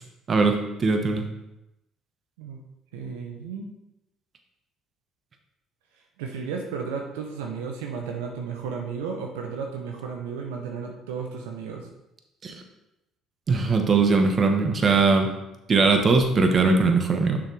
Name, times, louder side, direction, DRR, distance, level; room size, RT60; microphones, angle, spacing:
voice 1, 0.3-1.2 12.4-12.5 13.5-15.3 15.7-17.4, right 4 dB, 40° right, 5 dB, 1.1 m, -20 dB
voice 2, 2.9-3.7 6.2-11.9, right 5 dB, 85° right, 2 dB, 0.7 m, -33 dB
6.7 x 5.7 x 3.3 m, 0.91 s
hypercardioid pair, 60°, 0 cm